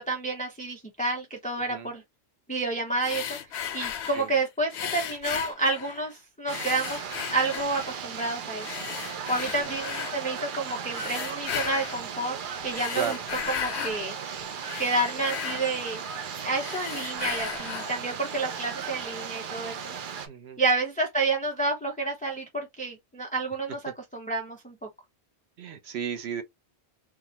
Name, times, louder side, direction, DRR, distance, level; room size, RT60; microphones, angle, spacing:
voice 1, 0.0-2.0 2.5-3.4 3.7-8.9 9.3-12.3 12.6-13.2 13.5-14.1 14.8-16.0 16.4-19.9 20.6-23.8 24.1-24.7, right 2 dB, 10° left, 0.7 m, -29 dB
sound 1, 3.0-4.3 4.7-6.1 6.5-8.0 8.6-10.2 10.9-12.0 12.6-14.0 14.4-16.2 16.6-18.0, left 9 dB, 85° left, 0.9 m, -35 dB
sound 2, 6.5-20.3, right 7 dB, 55° right, 0.7 m, -36 dB
voice 2, 20.3-20.6 25.6-26.4, right 7 dB, 75° right, 1.0 m, -34 dB
3.6 x 2.3 x 2.8 m
omnidirectional pair, 1.1 m